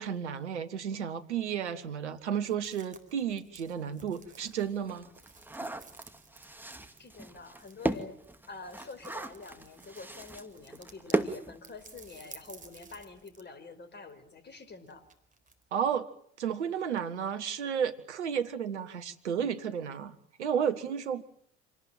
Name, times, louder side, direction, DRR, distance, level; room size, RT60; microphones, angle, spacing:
voice 1, 0.0-5.1 5.6-5.7 15.7-16.1 16.4-21.2, right 8 dB, 80° right, 11 dB, 1.6 m, -32 dB
sound 1, 2.4-11.3 11.6-13.5 13.8-15.6, right 4 dB, 25° right, 4.0 m, -55 dB
sound 2, 3.6-3.7 4.2-12.2 12.5-12.6 12.9-13.1, right 2 dB, 5° right, 2.2 m, -37 dB
voice 2, 7.0-8.2 8.5-15.1, left 3 dB, 30° left, 11 dB, 5.0 m, -47 dB
27.0 x 19.0 x 9.1 m, 0.64 s
figure-of-eight pair, 60°, 35 cm